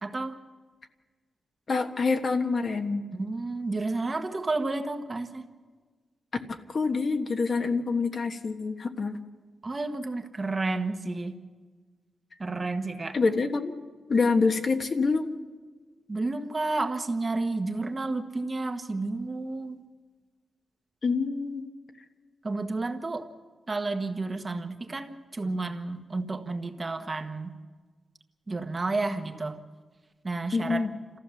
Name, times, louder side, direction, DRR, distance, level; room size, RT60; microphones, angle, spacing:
voice 1, 0.0-0.4 3.1-5.4 9.6-11.3 12.4-13.2 16.1-19.8 22.4-23.3 23.7-27.5 28.5-29.6 30.2-30.8, right 3 dB, 30° right, 6 dB, 1.3 m, -31 dB
voice 2, 1.7-3.0 6.5-9.2 13.1-13.7 14.1-15.3 21.0-21.6 30.5-30.9, left 4 dB, 50° left, 5 dB, 1.4 m, -26 dB
28.5 x 14.5 x 7.1 m, 1.5 s
wide cardioid pair, 105°, 0 cm